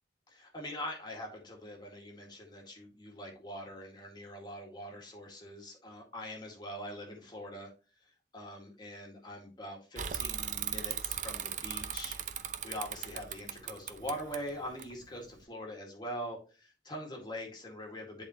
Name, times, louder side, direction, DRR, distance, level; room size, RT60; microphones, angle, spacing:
voice 1, 0.3-7.7 8.3-12.2 12.6-18.2, equal, 25° left, 0 dB, 2.0 m, -43 dB
Bicycle / Mechanisms, 10.0-15.4, right 9 dB, 45° right, 0.6 m, -38 dB
10.5 x 4.4 x 3.0 m, 0.33 s
head